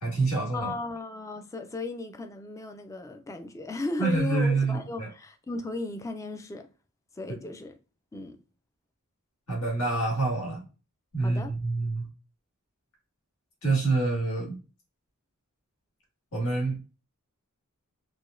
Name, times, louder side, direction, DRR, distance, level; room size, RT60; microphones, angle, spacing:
voice 1, 0.0-0.7 4.0-5.1 9.5-10.6 11.1-12.1 13.6-14.6 16.3-16.8, right 3 dB, 80° left, 1.8 m, -27 dB
voice 2, 0.5-6.7 7.2-7.8 8.1-8.4 11.2-11.5, left 2 dB, 15° left, 0.3 m, -35 dB
4.8 x 2.1 x 2.5 m
head